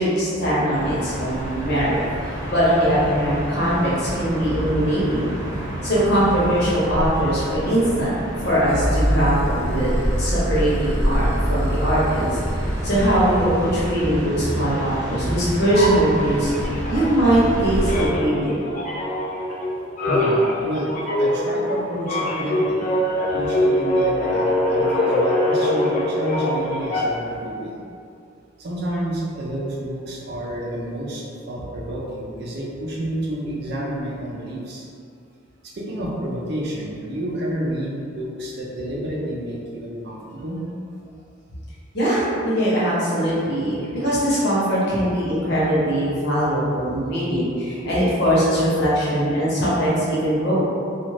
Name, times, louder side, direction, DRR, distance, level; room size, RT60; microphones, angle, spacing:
voice 1, 0.0-5.3 5.8-8.1 8.4-12.4 12.8-16.5 16.8-18.6 41.9-50.6, right 1 dB, 60° left, -8 dB, 0.9 m, -21 dB
sound 1, 0.7-18.1, equal, 20° right, 0.7 m, -28 dB
sound 2, 8.7-13.9, equal, 85° left, 0.6 m, -26 dB
sound 3, 15.7-17.6 17.8-27.4, left 1 dB, 40° left, 0.4 m, -23 dB
voice 2, 20.1-20.9 21.2-22.9 23.2-27.8 28.6-34.9 35.6-40.6, right 1 dB, 55° right, -4 dB, 0.5 m, -30 dB
2.5 x 2.4 x 3.2 m, 2.5 s
head